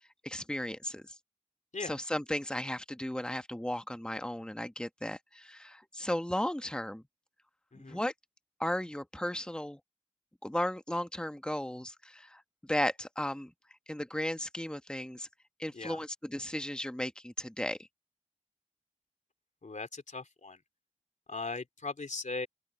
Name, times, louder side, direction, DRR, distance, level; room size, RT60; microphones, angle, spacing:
voice 1, 0.2-1.2 1.8-7.0 7.7-8.1 8.6-9.8 10.4-13.5 13.9-15.3 15.6-17.9, left 1 dB, 5° left, 1.2 m, -35 dB
voice 2, 19.6-20.6 21.3-22.5, left 3 dB, 90° left, 3.4 m, -39 dB
open air
wide cardioid pair, 50°, 12 cm